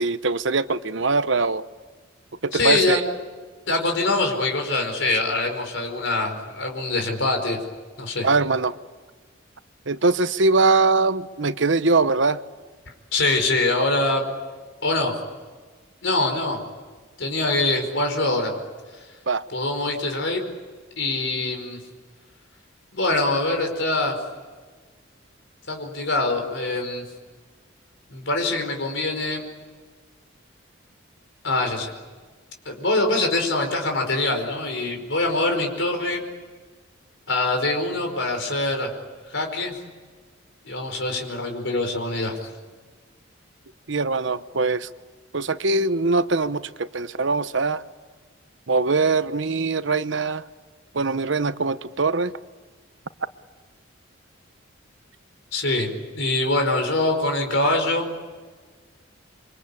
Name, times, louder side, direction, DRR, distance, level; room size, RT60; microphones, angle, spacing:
voice 1, 0.0-1.6 2.4-3.0 8.2-8.8 9.9-12.4 19.3-19.4 21.2-21.4 43.9-44.9 45.3-47.8 48.7-50.4 50.9-52.3, right 3 dB, 70° right, 13 dB, 0.9 m, -22 dB
voice 2, 2.5-3.0 3.7-7.6 8.0-8.3 13.1-14.2 14.8-15.1 16.0-16.6 17.2-18.5 19.5-20.4 21.0-21.8 22.9-24.1 25.7-27.0 28.1-29.4 31.4-31.9 32.6-36.2 37.3-38.9 39.3-39.7 40.6-42.5 55.5-58.1, left 2 dB, 70° left, 3 dB, 4.9 m, -24 dB
27.5 x 25.0 x 8.6 m, 1.4 s
head